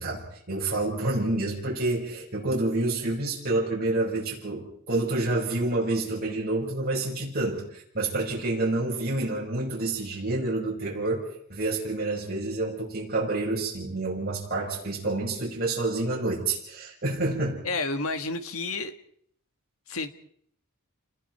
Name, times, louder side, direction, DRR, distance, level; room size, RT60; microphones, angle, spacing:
voice 1, 0.0-11.2 11.5-17.6, right 2 dB, 45° right, -5 dB, 5.8 m, -28 dB
voice 2, 17.6-18.9 19.9-20.1, left 3 dB, 75° left, 8 dB, 1.9 m, -30 dB
29.5 x 21.0 x 4.6 m, 0.64 s
head